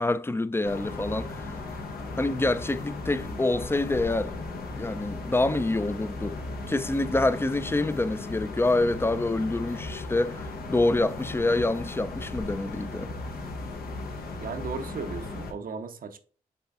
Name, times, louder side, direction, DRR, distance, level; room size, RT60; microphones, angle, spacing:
voice 1, 0.0-1.4 2.2-4.3 4.8-6.4 6.7-13.1, left 2 dB, 15° left, 0.4 m, -26 dB
sound 1, 0.6-15.5, left 3 dB, 75° left, 0.8 m, -36 dB
voice 2, 14.4-16.2, right 5 dB, 65° right, 0.7 m, -36 dB
5.5 x 3.8 x 2.4 m
supercardioid pair, 40°, 16 cm